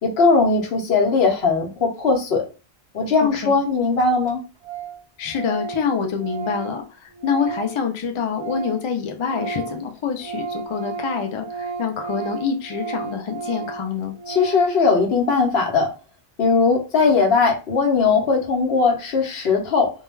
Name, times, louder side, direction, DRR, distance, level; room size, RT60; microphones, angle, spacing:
voice 1, 0.0-2.4 2.9-4.4 14.3-15.9 16.4-19.9, left 4 dB, 80° left, 1.0 m, -19 dB
voice 2, 3.2-3.6 5.2-14.1, left 6 dB, 50° left, 0.3 m, -26 dB
Organ, 3.7-3.8 4.0-4.1 4.3-4.4 4.6-5.0 5.3-8.9 9.2-14.8, right 5 dB, 30° right, 0.6 m, -33 dB
2.2 x 2.2 x 3.0 m
omnidirectional pair, 1.0 m